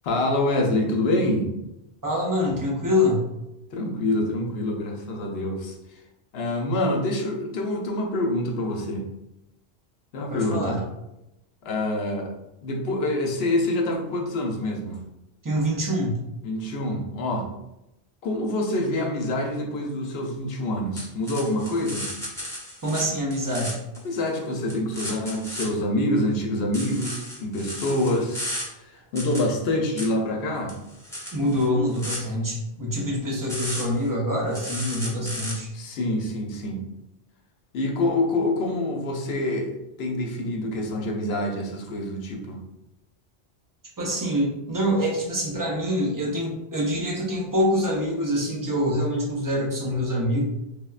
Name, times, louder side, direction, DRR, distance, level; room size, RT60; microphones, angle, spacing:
voice 1, 0.0-1.5 3.7-6.0 6.3-9.1 10.1-10.8 11.6-15.0 16.4-17.5 18.2-22.1 24.0-28.4 28.7-30.7 35.1-35.4 35.7-36.8 37.7-42.6, left 1 dB, 75° left, 2 dB, 0.8 m, -26 dB
voice 2, 2.0-3.3 10.3-10.8 15.4-16.2 22.8-23.8 31.3-35.7 44.0-50.4, equal, 30° right, -2 dB, 0.4 m, -25 dB
sound 1, 21.0-23.0 23.3-24.2 24.7-25.7 26.7-28.6 29.2-29.4 30.0-30.1 30.7-32.2 33.5-34.1 34.5-35.5, equal, 5° left, 0.7 m, -34 dB
3.4 x 2.1 x 2.3 m, 0.89 s
omnidirectional pair, 1.1 m